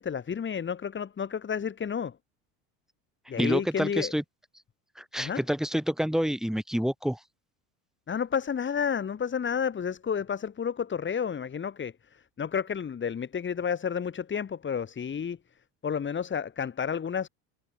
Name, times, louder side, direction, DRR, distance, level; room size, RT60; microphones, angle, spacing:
voice 1, 0.0-2.2 3.3-4.1 5.2-5.4 8.1-15.4 15.8-17.3, left 7 dB, 25° left, 4.6 m, -31 dB
voice 2, 3.4-4.2 5.0-7.2, equal, ahead, 4.3 m, -28 dB
supercardioid pair, 115°, 42 cm